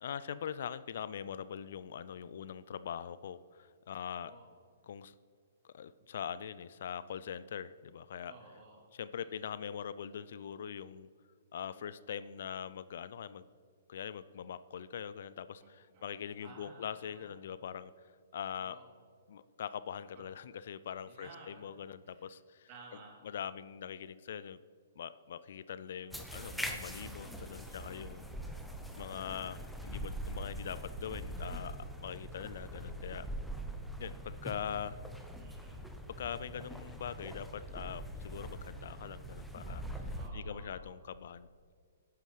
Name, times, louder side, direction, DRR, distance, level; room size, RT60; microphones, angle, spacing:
voice 1, 0.0-4.3 4.8-5.1 5.6-8.3 8.9-11.1 11.5-13.5 13.9-18.8 19.3-22.7 23.2-24.6 25.0-28.3 29.0-33.2 34.0-35.0 36.1-41.7, left 8 dB, 60° left, 15 dB, 0.3 m, -42 dB
voice 2, 8.3-8.9 9.2-9.3 15.6-17.3 18.6-18.9 20.1-20.2 21.1-21.7 22.0-22.3 22.7-23.2 27.0-28.2 35.4-36.0 40.1-40.9, right 3 dB, 40° right, -1 dB, 2.9 m, -56 dB
sound 1, 26.1-40.3, right 1 dB, ahead, 0.8 m, -43 dB
11.5 x 9.4 x 3.2 m, 2.1 s
figure-of-eight pair, 120°, 0 cm